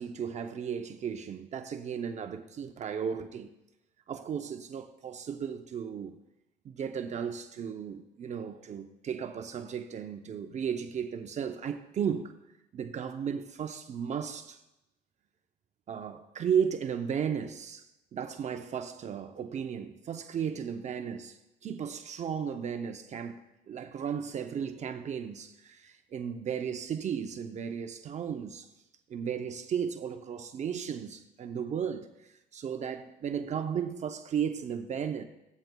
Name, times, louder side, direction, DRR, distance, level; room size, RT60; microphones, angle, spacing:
voice 1, 0.0-3.5 4.1-6.2 6.6-12.3 12.7-14.6 15.9-17.9 18.1-23.4 23.7-28.7 29.1-35.2, right 7 dB, 45° right, 0.6 m, -35 dB
16.5 x 12.0 x 2.3 m
cardioid pair, 110°, 17 cm